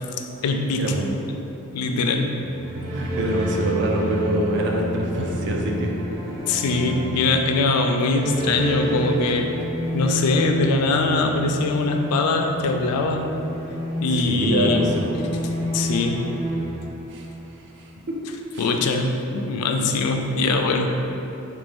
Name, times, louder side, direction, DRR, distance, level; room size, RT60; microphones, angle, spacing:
voice 1, 0.4-0.8 1.3-1.4 1.7-2.3 6.5-9.5 9.9-13.3 14.0-14.9 15.7-16.2 18.6-20.9, left 3 dB, 85° left, 4 dB, 0.3 m, -22 dB
sound 1, 2.4-17.5, equal, 80° right, 1.3 m, -30 dB
voice 2, 2.9-5.9 14.1-15.0 17.1-17.3 18.1-18.2 18.5-18.7, right 1 dB, 55° right, 0 dB, 0.4 m, -25 dB
3.3 x 2.5 x 3.4 m, 2.9 s
head